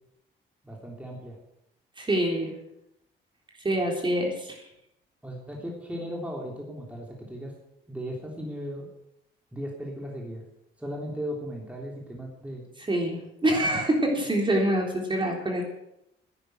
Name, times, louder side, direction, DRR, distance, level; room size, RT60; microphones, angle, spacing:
voice 1, 0.6-1.4 5.2-7.5 7.9-8.9 9.5-10.4 10.8-12.7, equal, 5° right, -1 dB, 3.4 m, -36 dB
voice 2, 2.0-2.5 3.6-4.6 12.9-15.6, right 1 dB, 25° right, 1 dB, 3.7 m, -25 dB
11.0 x 9.8 x 8.1 m, 0.81 s
cardioid pair, 90°, 20 cm